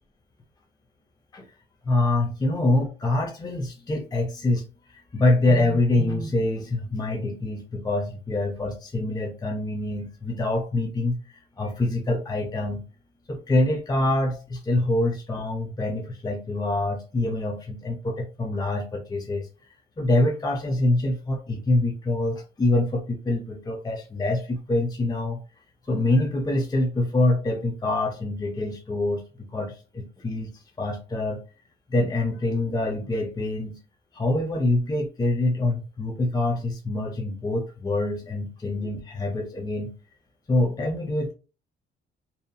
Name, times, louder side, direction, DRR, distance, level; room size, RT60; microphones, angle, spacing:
voice 1, 1.8-12.8 13.3-19.5 20.0-25.4 25.9-31.4 31.9-33.8 34.1-39.9 40.5-41.3, left 2 dB, 20° left, 2 dB, 0.5 m, -25 dB
2.7 x 2.5 x 2.3 m, 0.33 s
cardioid pair, 90°, 20 cm